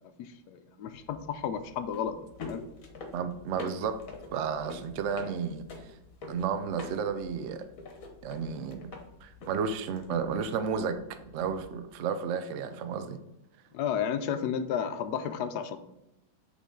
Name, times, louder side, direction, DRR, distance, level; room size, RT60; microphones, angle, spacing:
voice 1, 0.2-2.2 2.5-2.6 13.7-15.8, left 8 dB, 70° left, 10 dB, 1.0 m, -32 dB
sound 1, 0.9-11.8, left 3 dB, 55° left, 1.2 m, -46 dB
voice 2, 3.1-4.0 4.3-5.6 6.3-7.7 8.2-8.9 9.2-11.0 11.3-13.2, right 6 dB, 85° right, 9 dB, 0.6 m, -32 dB
8.3 x 3.9 x 3.7 m, 0.87 s
omnidirectional pair, 2.0 m